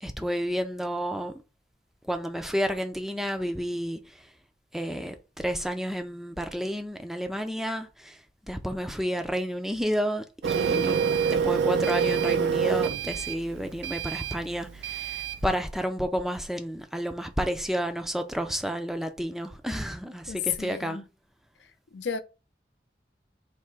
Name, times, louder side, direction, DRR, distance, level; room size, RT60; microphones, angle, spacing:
voice 1, 0.0-1.4 2.0-4.3 4.7-8.2 8.5-21.0, equal, ahead, 0.3 m, -31 dB
Printer, 10.4-15.4, right 7 dB, 80° right, 0.3 m, -27 dB
voice 2, 20.3-21.1 21.9-22.2, left 8 dB, 90° left, 0.5 m, -32 dB
3.4 x 2.8 x 4.4 m
head